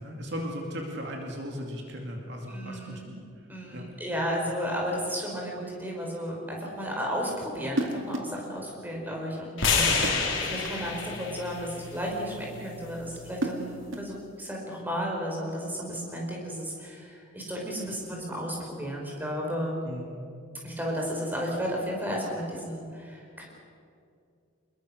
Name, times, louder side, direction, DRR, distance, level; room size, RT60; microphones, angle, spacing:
voice 1, 0.0-3.0 3.7-3.9 9.8-10.0 19.8-20.1, equal, 60° right, 1 dB, 2.6 m, -37 dB
voice 2, 2.5-3.1 3.5-10.0 10.3-19.8 20.6-23.4, equal, 10° right, -1 dB, 5.4 m, -33 dB
sound 1, 7.7-8.4 10.0-10.8 13.1-14.2, right 1 dB, 85° right, 2.2 m, -33 dB
sound 2, 9.6-13.8, left 5 dB, 70° left, 4.0 m, -30 dB
27.0 x 21.5 x 6.5 m, 2.4 s
head